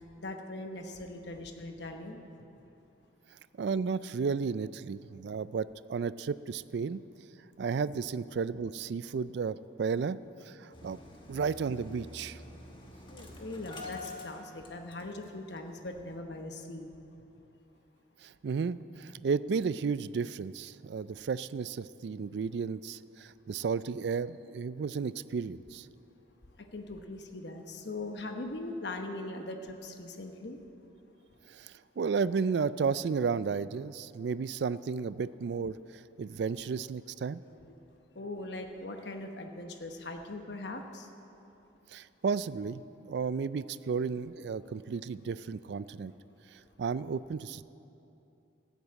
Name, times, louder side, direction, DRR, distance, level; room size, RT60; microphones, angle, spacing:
voice 1, 0.2-2.2 13.1-16.9 26.7-30.6 37.6-37.7 38.1-41.1, left 2 dB, 65° left, 4 dB, 1.0 m, -40 dB
voice 2, 3.6-7.0 7.6-10.2 10.5-11.0 11.3-12.4 18.2-25.9 31.5-37.4 41.9-42.8 43.1-46.1 46.5-47.6, right 5 dB, 65° right, 17 dB, 0.3 m, -33 dB
Engine starting, 10.7-15.3 15.6-15.7 16.0-16.1, left 3 dB, 25° left, 1.3 m, -46 dB
13.5 x 8.1 x 8.4 m, 2.8 s
head